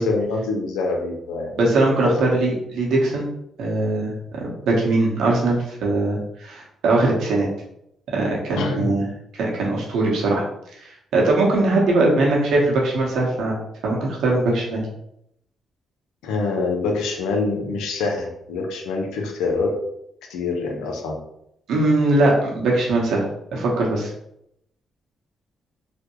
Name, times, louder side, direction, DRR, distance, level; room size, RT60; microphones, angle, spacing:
voice 1, 0.0-1.5 2.0-2.3 8.5-9.0 16.2-19.7 20.3-21.2, left 3 dB, 90° left, 2 dB, 0.5 m, -25 dB
voice 2, 1.6-3.3 3.6-7.5 8.1-9.0 9.3-10.4 10.8-13.6 13.8-14.8 21.7-23.2 23.5-24.1, right 2 dB, 80° right, -2 dB, 0.9 m, -21 dB
3.2 x 2.2 x 3.0 m, 0.77 s
supercardioid pair, 60°, 0 cm